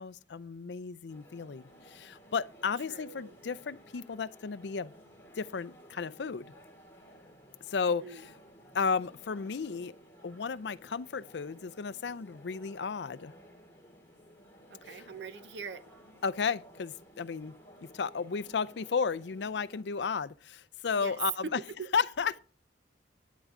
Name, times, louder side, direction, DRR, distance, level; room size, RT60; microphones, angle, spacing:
voice 1, 0.0-4.9 5.4-6.5 7.7-8.3 8.7-9.9 10.2-13.3 14.9-15.0 16.2-17.5 17.8-21.6 21.9-22.4, left 5 dB, 65° left, 0.5 m, -33 dB
sound 1, 1.1-19.8, equal, 10° left, 2.9 m, -56 dB
voice 2, 2.9-3.3 8.0-8.3 14.8-15.8 21.0-21.2 21.5-21.9, right 5 dB, 65° right, 0.7 m, -43 dB
11.5 x 10.5 x 3.7 m
head